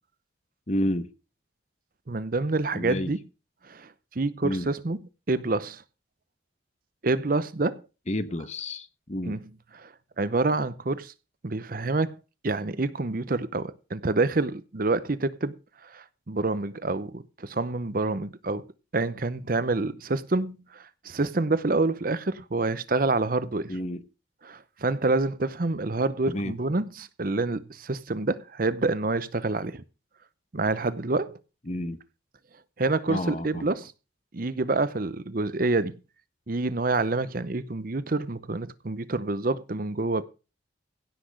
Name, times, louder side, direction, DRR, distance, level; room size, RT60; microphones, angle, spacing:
voice 1, 0.7-1.1 2.7-3.1 4.4-4.7 8.1-9.4 23.7-24.0 26.3-26.5 31.7-32.0 33.1-33.7, left 1 dB, 35° left, 1.1 m, -30 dB
voice 2, 2.1-3.2 3.6-5.0 5.3-5.8 7.0-7.8 9.3-9.4 9.7-11.1 11.4-12.2 12.4-15.6 15.8-18.6 18.9-23.8 24.4-29.8 30.5-31.4 32.8-33.9 34.3-35.9 36.5-40.2, right 3 dB, 45° right, 0.7 m, -27 dB
16.5 x 6.0 x 6.4 m
head